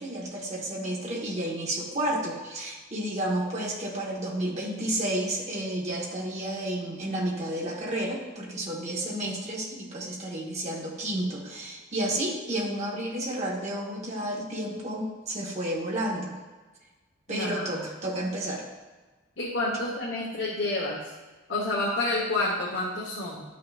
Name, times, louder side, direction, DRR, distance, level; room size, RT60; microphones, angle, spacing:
voice 1, 0.0-16.3 17.3-18.7, right 1 dB, 35° right, -3 dB, 1.7 m, -31 dB
voice 2, 17.3-17.9 19.4-21.1 21.5-23.4, left 2 dB, 60° left, -5 dB, 1.4 m, -29 dB
12.0 x 5.9 x 2.5 m, 1.3 s
head